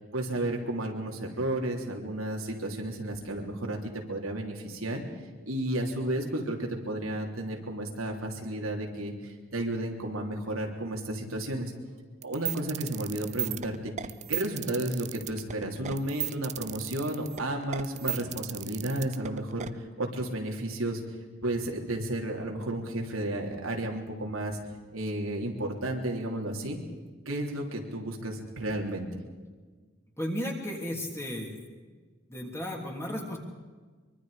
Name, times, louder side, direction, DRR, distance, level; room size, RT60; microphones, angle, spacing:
voice 1, 0.1-5.0 5.5-11.7 12.2-21.0 21.4-24.6 24.9-26.8 27.2-29.1, right 1 dB, 85° right, 1 dB, 3.3 m, -32 dB
sound 1, 12.2-19.7, right 10 dB, 35° right, 0.6 m, -35 dB
voice 2, 30.2-31.6 32.3-33.4, equal, 15° left, 1 dB, 3.0 m, -34 dB
24.0 x 24.0 x 5.1 m, 1.4 s
head